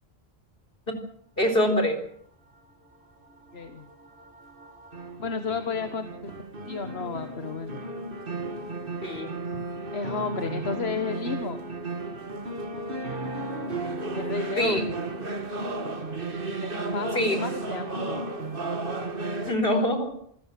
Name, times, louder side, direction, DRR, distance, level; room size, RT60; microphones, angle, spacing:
voice 1, 1.4-2.0 9.0-9.3 14.6-14.8 17.1-17.4 19.5-20.1, left 1 dB, 65° left, 6 dB, 4.2 m, -24 dB
sound 1, 3.3-19.5, right 2 dB, 60° right, 2.0 m, -34 dB
voice 2, 3.5-3.9 5.2-6.3 6.6-7.8 9.9-11.6 14.1-14.8 16.6-18.2, left 5 dB, 80° left, 9 dB, 1.6 m, -32 dB
27.0 x 15.5 x 7.6 m, 0.67 s
omnidirectional pair, 1.0 m